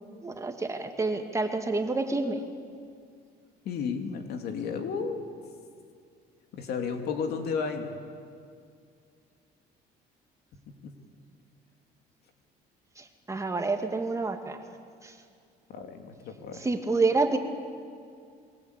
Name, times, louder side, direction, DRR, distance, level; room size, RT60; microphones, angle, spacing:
voice 1, 0.2-2.4 13.0-14.6 15.0-15.2 16.6-17.4, right 3 dB, 20° right, 5 dB, 2.2 m, -28 dB
voice 2, 3.6-5.2 6.5-7.9 10.7-10.9 15.7-16.7, left 5 dB, 70° left, 5 dB, 3.0 m, -33 dB
27.0 x 22.0 x 8.4 m, 2.3 s
cardioid pair, 110°, 17 cm